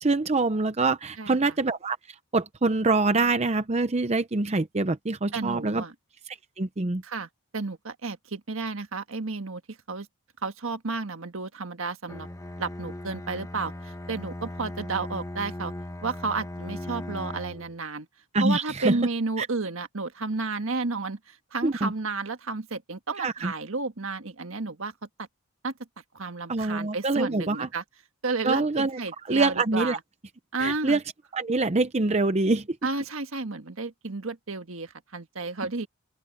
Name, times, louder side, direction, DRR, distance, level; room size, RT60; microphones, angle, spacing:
voice 1, 0.0-5.8 6.3-7.0 18.3-19.0 19.4-19.5 21.6-21.9 23.2-23.5 26.5-27.7 28.4-29.0 29.3-30.0 30.6-31.0 31.3-32.8, right 3 dB, 30° right, 0.7 m, -25 dB
voice 2, 1.2-1.5 5.3-5.9 7.0-10.1 10.4-12.3 12.6-15.7 16.0-18.1 18.4-24.9 25.6-25.7 26.1-27.8 28.2-30.0 30.5-31.0 32.8-35.9, right 3 dB, 70° right, 1.6 m, -32 dB
Bowed string instrument, 12.1-17.8, left 1 dB, 15° left, 1.1 m, -38 dB
open air
head